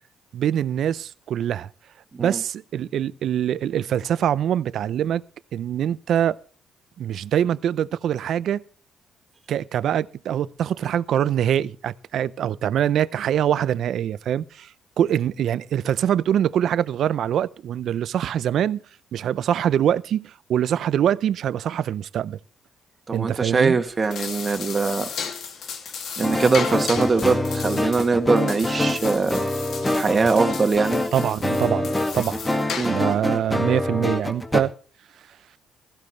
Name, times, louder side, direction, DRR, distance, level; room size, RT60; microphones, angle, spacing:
voice 1, 0.3-1.7 2.2-5.2 5.5-6.4 7.0-8.6 9.5-14.7 15.0-18.8 19.1-22.4 23.1-23.8 31.1-31.9 32.1-32.4 32.9-34.7, right 10 dB, 70° right, 0.6 m, -24 dB
voice 2, 23.1-25.1 26.2-29.4 29.9-31.0 32.8-33.0, right 4 dB, 35° right, 2.1 m, -22 dB
sound 1, 23.9-33.2, left 6 dB, 65° left, 2.4 m, -35 dB
sound 2, 26.2-34.6, left 1 dB, 15° left, 2.1 m, -25 dB
16.0 x 14.0 x 3.3 m
cardioid pair, 90°, 0 cm